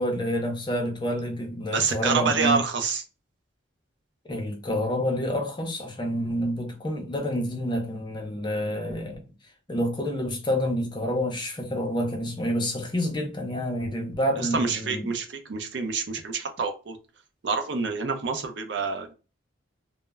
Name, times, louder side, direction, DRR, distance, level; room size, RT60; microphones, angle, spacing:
voice 1, 0.0-2.6 4.3-9.2 9.7-15.1, equal, 25° left, 0.5 m, -28 dB
voice 2, 1.7-3.0 14.4-17.0 17.4-19.1, right 4 dB, 60° right, 0.5 m, -27 dB
2.1 x 2.0 x 3.3 m
head